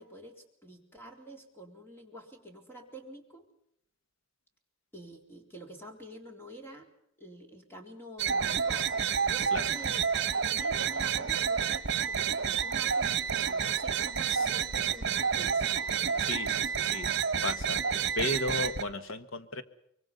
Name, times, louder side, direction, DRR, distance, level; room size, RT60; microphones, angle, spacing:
voice 1, 0.0-3.4 4.9-6.9 7.2-8.9 9.2-15.6, right 1 dB, 10° left, 2 dB, 3.9 m, -48 dB
sound 1, 8.2-18.8, right 7 dB, 55° right, 1.2 m, -29 dB
voice 2, 16.2-17.1 17.4-17.8 18.2-19.6, left 2 dB, 80° left, 11 dB, 1.7 m, -34 dB
24.5 x 24.0 x 5.6 m, 0.75 s
head